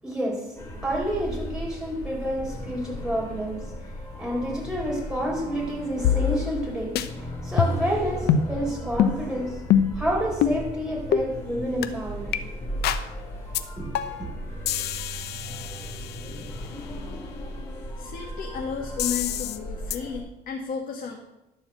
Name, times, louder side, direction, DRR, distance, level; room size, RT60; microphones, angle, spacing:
voice 1, 0.0-9.7 9.9-12.4 13.8-14.3, equal, 5° right, -4 dB, 4.7 m, -29 dB
sound 1, 0.6-20.2, equal, 10° left, 4.2 m, -37 dB
sound 2, 6.0-6.7 7.0-7.1 7.6-7.9 8.3-8.5 9.0-9.2 9.7-10.0 10.4-10.6 11.1-11.3 11.8-11.9 12.3-12.4 12.8-13.1 13.5-13.6 13.9-14.3 14.7-16.5 19.0-19.6 19.9-20.0, left 8 dB, 75° left, 0.7 m, -24 dB
voice 2, 18.0-21.2, left 6 dB, 55° left, 0 dB, 1.5 m, -33 dB
11.5 x 4.6 x 7.7 m, 0.91 s
cardioid pair, 110°, 17 cm